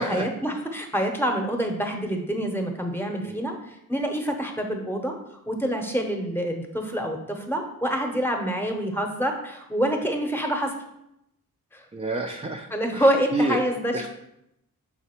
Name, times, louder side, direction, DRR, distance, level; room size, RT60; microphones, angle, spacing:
voice 1, 0.0-5.2 5.5-10.7 11.7-11.8 12.7-14.1, equal, 5° left, 3 dB, 0.8 m, -26 dB
voice 2, 11.9-12.7 12.9-13.6 13.9-14.1, right 2 dB, 15° right, 2 dB, 0.4 m, -28 dB
5.8 x 4.0 x 4.4 m, 0.82 s
wide cardioid pair, 120°, 36 cm